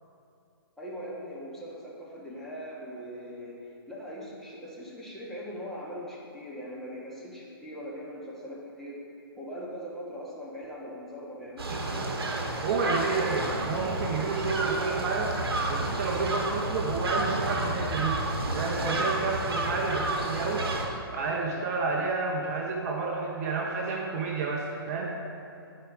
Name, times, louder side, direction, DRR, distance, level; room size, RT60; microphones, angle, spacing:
voice 1, 0.8-9.0 9.4-12.1, equal, ahead, -7 dB, 1.3 m, -41 dB
sound 1, 11.6-20.9, right 2 dB, 70° right, 1.1 m, -30 dB
voice 2, 12.6-15.4 15.7-18.2 18.5-20.7 21.1-25.2, right 4 dB, 40° right, -1 dB, 0.8 m, -30 dB
10.5 x 4.7 x 3.6 m, 2.6 s
hypercardioid pair, 130°, 13 cm